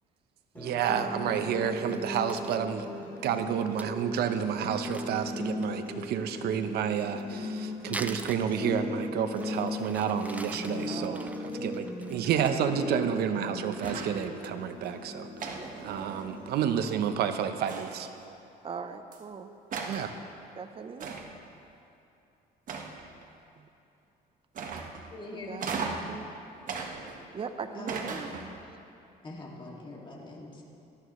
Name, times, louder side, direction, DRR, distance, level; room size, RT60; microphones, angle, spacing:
sound 1, 0.6-16.6, left 2 dB, 10° left, 3.8 m, -38 dB
voice 1, 0.6-2.9 3.2-11.2 11.5-18.1 19.9-20.1, right 8 dB, 70° right, 8 dB, 0.9 m, -30 dB
Crumpling crinkling, 1.9-2.6 3.2-3.3 3.5-3.6 3.8-3.9 4.2-4.3 4.6-5.9 7.0-9.0 9.3-12.5 12.9-13.2 13.5-14.7 15.1-15.2 15.6-16.1, right 2 dB, 10° right, 0.5 m, -45 dB
voice 2, 10.9-11.4 15.5-15.9 18.6-19.5 20.6-21.1 23.6-23.7 25.3-26.3 27.3-28.3, right 5 dB, 35° right, 8 dB, 0.8 m, -40 dB
sound 2, 13.8-14.3 15.4-16.5 17.7-18.2 19.1-19.2 19.7-20.1 21.0-21.5 22.7-23.2 24.5-25.1 25.6-26.2 26.7-27.4 27.9-28.6, right 4 dB, 50° right, 1.3 m, -37 dB
voice 3, 25.1-25.7 27.7-28.4 29.2-30.6, left 2 dB, 30° left, -2 dB, 2.4 m, -43 dB
18.0 x 13.0 x 3.2 m, 2.7 s
cardioid pair, 110°, 17 cm